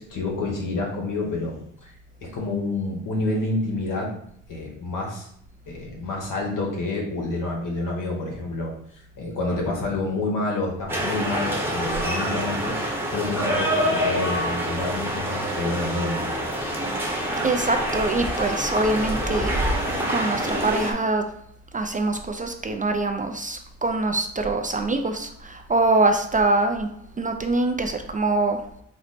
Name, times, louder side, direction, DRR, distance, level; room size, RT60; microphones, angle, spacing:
voice 1, 0.0-1.9 2.2-4.1 4.5-5.3 5.7-12.7 13.1-16.4, left 2 dB, 70° left, 0 dB, 1.3 m, -28 dB
sound 1, 10.9-20.9, equal, 5° right, 0.9 m, -26 dB
voice 2, 17.4-19.6 20.1-21.2 21.7-26.9 27.2-28.6, right 2 dB, 25° right, 5 dB, 0.3 m, -24 dB
4.2 x 2.1 x 4.1 m, 0.72 s
cardioid pair, 95°, 33 cm